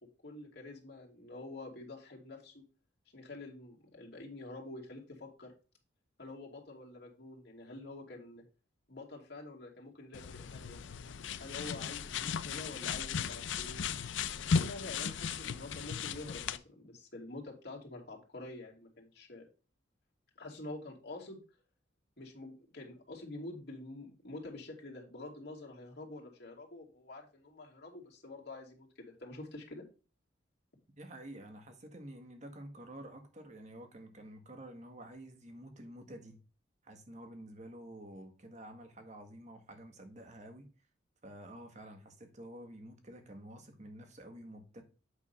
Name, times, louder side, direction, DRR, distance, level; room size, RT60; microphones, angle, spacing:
voice 1, 0.2-2.6 3.1-5.5 6.2-8.4 8.9-10.8 11.4-13.8 14.4-19.5 20.4-21.4 22.2-29.8, left 2 dB, 55° left, 2.6 m, -47 dB
sound 1, 10.1-16.6, left 6 dB, 70° left, 0.5 m, -36 dB
voice 2, 31.0-36.4 36.8-40.7 41.2-44.8, right 1 dB, 35° right, 1.5 m, -50 dB
8.3 x 3.6 x 5.6 m
head